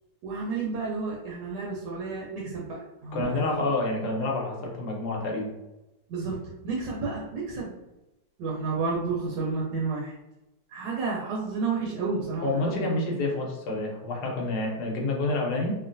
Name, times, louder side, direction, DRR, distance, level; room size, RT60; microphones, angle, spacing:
voice 1, 0.2-3.5 6.1-7.7 8.4-10.1 10.7-12.8, right 4 dB, 75° right, -3 dB, 1.2 m, -31 dB
voice 2, 3.1-5.5 12.4-15.7, left 2 dB, 70° left, -1 dB, 1.3 m, -28 dB
3.1 x 2.5 x 2.5 m, 0.98 s
omnidirectional pair, 1.9 m